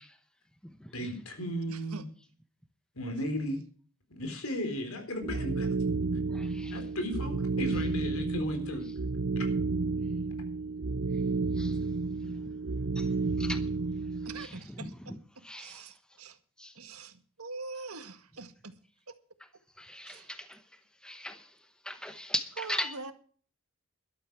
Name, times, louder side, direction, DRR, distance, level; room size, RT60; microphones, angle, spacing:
voice 1, 0.9-2.0 3.0-3.6 4.1-5.7 6.7-8.9, equal, 70° left, 3.9 m, -35 dB
voice 2, 1.7-2.0 14.2-16.4 16.8-18.8 19.1-19.2 20.0-20.3 22.6-23.1, right 3 dB, 80° right, 1.8 m, -44 dB
sound 1, 5.2-14.5, right 3 dB, 55° right, 0.7 m, -31 dB
voice 3, 6.3-6.7 11.6-11.7 13.0-13.1 13.4-13.6 15.4-15.8 16.6-16.7 19.8-20.6 21.0-21.5 21.9-22.9, left 1 dB, 5° left, 0.9 m, -37 dB
13.5 x 12.5 x 4.7 m
head